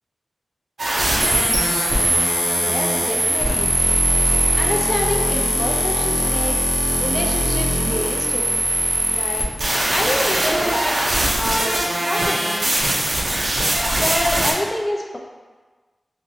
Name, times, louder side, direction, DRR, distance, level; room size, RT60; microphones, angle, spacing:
sound 1, 0.8-14.5, right 1 dB, 75° right, 0.6 m, -20 dB
voice 1, 2.6-3.8 4.5-6.6 7.0-8.4 9.1-9.4 9.9-11.1 11.4-12.7 13.9-15.2, left 1 dB, 30° left, -1 dB, 0.5 m, -27 dB
4.2 x 2.6 x 2.7 m, 1.3 s
cardioid pair, 45°, 0 cm